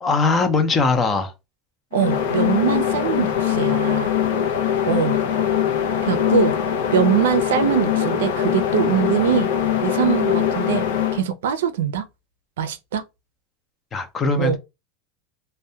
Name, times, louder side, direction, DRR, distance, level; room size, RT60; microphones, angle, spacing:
voice 1, 0.0-1.3 13.9-14.6, left 4 dB, 20° left, 0.5 m, -20 dB
sound 1, 1.9-11.2, left 9 dB, 75° left, 0.5 m, -22 dB
voice 2, 1.9-4.1 4.9-5.2 6.0-6.5 6.9-9.5 9.8-10.8 11.1-12.0 12.6-13.0 14.4-14.6, right 8 dB, 90° right, 0.4 m, -22 dB
2.2 x 2.1 x 2.7 m
supercardioid pair, 140°, 0 cm